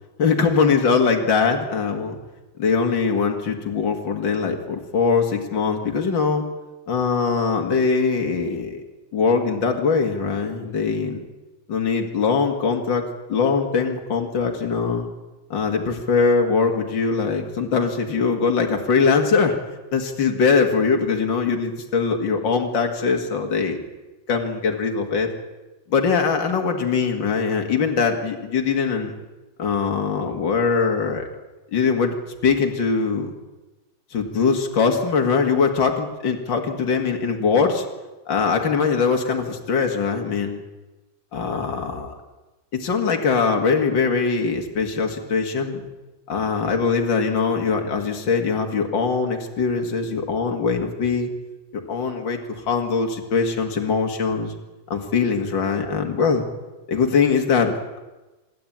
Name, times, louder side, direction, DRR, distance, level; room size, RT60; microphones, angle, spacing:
voice 1, 0.2-2.2 2.6-6.4 6.9-8.8 9.1-11.2 11.7-15.1 15.5-19.6 19.9-23.8 24.3-25.3 25.9-29.1 29.6-31.2 31.7-32.2 32.4-33.3 34.1-37.8 38.3-40.6 41.3-42.1 42.7-45.8 46.3-51.3 51.9-54.5 54.9-56.4 56.9-58.0, left 5 dB, 70° left, 3 dB, 2.8 m, -22 dB
26.0 x 11.5 x 8.9 m, 1.1 s
omnidirectional pair, 2.1 m